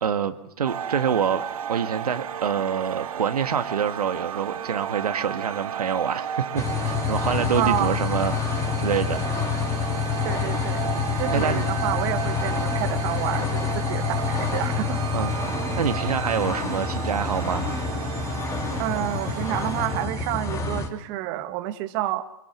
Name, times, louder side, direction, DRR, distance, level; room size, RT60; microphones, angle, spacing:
voice 1, 0.0-1.4 1.7-9.3 10.9-11.7 15.1-17.7, right 7 dB, 85° right, 1.8 m, -26 dB
sound 1, 0.6-20.1, right 9 dB, 65° right, 1.5 m, -33 dB
sound 2, 6.6-20.9, left 6 dB, 15° left, 2.7 m, -28 dB
voice 2, 7.5-8.0 10.2-10.8 11.2-15.0 18.8-22.2, right 14 dB, 40° right, 1.9 m, -29 dB
26.5 x 21.5 x 7.2 m
hypercardioid pair, 135°, 19 cm